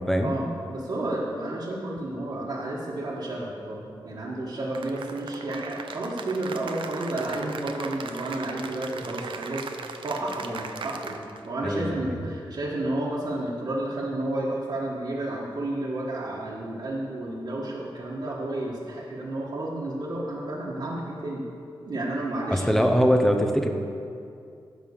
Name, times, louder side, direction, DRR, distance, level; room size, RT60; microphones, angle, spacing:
voice 1, 0.2-21.4 21.8-22.8, right 1 dB, 55° right, -6 dB, 1.6 m, -31 dB
Cheering / Applause, 4.7-11.5, right 5 dB, 75° right, 0.7 m, -38 dB
voice 2, 11.6-12.1 22.5-23.7, equal, 5° left, 4 dB, 0.8 m, -22 dB
15.5 x 5.7 x 6.7 m, 2.5 s
wide cardioid pair, 180°, 9 cm